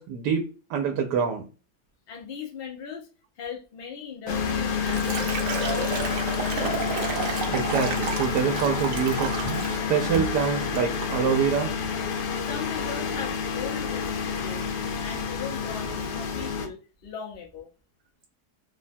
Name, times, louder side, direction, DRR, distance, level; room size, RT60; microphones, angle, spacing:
voice 1, 0.0-1.5 7.5-9.4 9.7-11.7, right 7 dB, 85° right, 1.2 m, -26 dB
voice 2, 2.1-3.1 3.4-6.6 12.4-14.7 15.0-17.7, left 6 dB, 50° left, 0.7 m, -39 dB
sound 1, 4.3-16.7, left 6 dB, 80° left, 1.2 m, -29 dB
Liquid, 4.3-9.8 10.1-10.4 10.8-11.1, right 4 dB, 65° right, 1.0 m, -32 dB
3.1 x 2.2 x 2.5 m
omnidirectional pair, 1.8 m